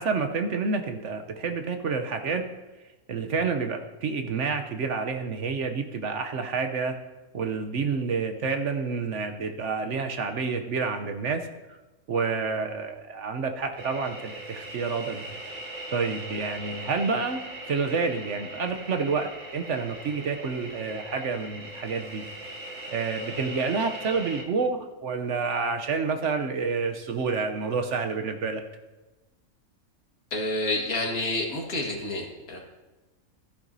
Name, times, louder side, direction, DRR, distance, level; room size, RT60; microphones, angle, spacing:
voice 1, 0.0-2.4 3.1-7.0 7.3-11.8 12.1-15.2 15.9-17.4 17.7-22.3 22.9-28.6, right 4 dB, 60° right, 6 dB, 1.0 m, -29 dB
sound 1, 13.8-24.4, right 1 dB, 35° right, 1.2 m, -40 dB
voice 2, 30.3-32.6, left 2 dB, 70° left, 0 dB, 2.2 m, -29 dB
15.0 x 10.0 x 2.7 m, 1.1 s
omnidirectional pair, 1.6 m